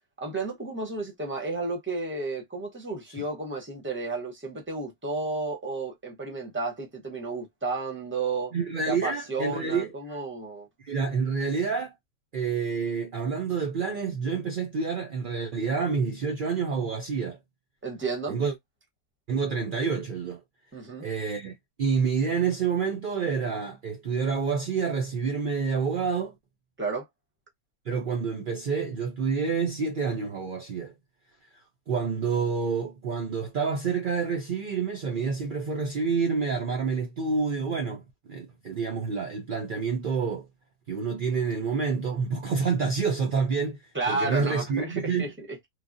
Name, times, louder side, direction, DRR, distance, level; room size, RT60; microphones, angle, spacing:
voice 1, 0.2-8.5 8.9-10.7 17.8-18.4 20.7-21.1 26.8-27.1 43.9-45.6, right 3 dB, 10° right, 0.7 m, -32 dB
voice 2, 8.5-10.2 10.8-11.9 12.3-17.4 18.3-18.5 19.3-20.4 21.0-26.4 27.9-30.9 31.9-38.0 38.3-40.5 40.9-43.8 44.1-45.3, right 5 dB, 65° right, 0.5 m, -28 dB
3.2 x 2.2 x 2.5 m
omnidirectional pair, 1.6 m